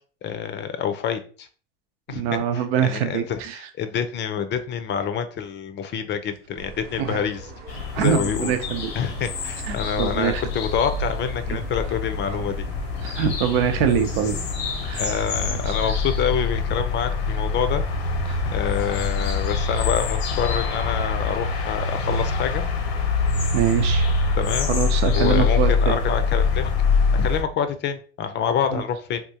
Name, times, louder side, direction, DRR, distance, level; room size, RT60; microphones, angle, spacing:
voice 1, 0.2-1.5 2.1-7.5 7.9-8.6 8.9-12.6 15.0-18.1 18.5-22.6 24.4-24.7 25.1-26.7 27.1-29.2, left 8 dB, 35° left, 9 dB, 0.5 m, -27 dB
voice 2, 2.1-3.6 7.0-7.2 7.9-8.9 9.6-10.4 11.5-11.6 13.0-14.4 14.8-15.1 15.5-15.9 18.3-18.4 23.5-24.1 24.7-26.0 28.7-28.8, right 8 dB, 70° right, 7 dB, 0.7 m, -24 dB
sound 1, 6.6-15.7, right 4 dB, 30° right, 0.8 m, -40 dB
sound 2, 7.7-27.4, left 4 dB, 75° left, 0.8 m, -25 dB
3.6 x 2.4 x 2.8 m, 0.40 s
hypercardioid pair, 95°, 31 cm